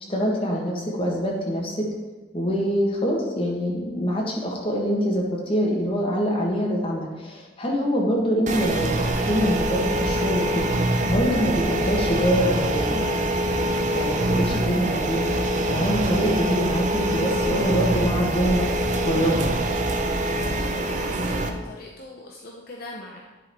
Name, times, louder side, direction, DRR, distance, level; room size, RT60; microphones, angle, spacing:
voice 1, 0.1-1.9 2.3-10.7 11.1-13.1 13.9-18.6 19.0-19.7, equal, 30° left, -2 dB, 1.5 m, -25 dB
sound 1, 8.5-21.5, right 1 dB, 45° right, 0.6 m, -24 dB
voice 2, 21.0-23.2, left 2 dB, 55° left, -1 dB, 0.7 m, -40 dB
9.9 x 4.0 x 4.5 m, 1.2 s
head